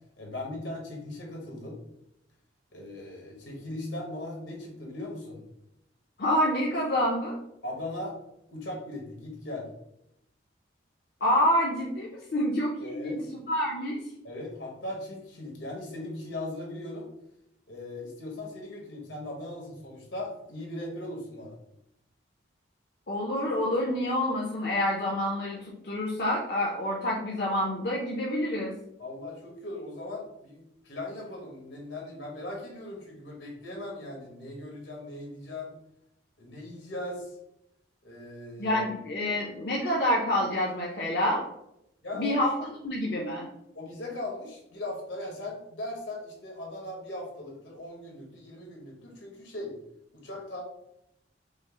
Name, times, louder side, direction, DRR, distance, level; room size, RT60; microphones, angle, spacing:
voice 1, 0.2-1.8 2.7-5.5 7.6-8.1 8.5-9.7 12.8-13.2 14.2-17.1 17.7-21.6 29.0-35.7 36.4-37.3 38.0-38.8 42.0-42.7 43.7-49.8 50.1-50.6, left 1 dB, 85° left, -1 dB, 1.3 m, -39 dB
voice 2, 6.2-7.4 11.2-13.2 13.5-14.0 23.1-28.7 38.6-41.5 42.1-42.5 42.8-43.5, left 1 dB, 55° left, -2 dB, 0.6 m, -27 dB
5.1 x 2.0 x 3.6 m, 0.80 s
head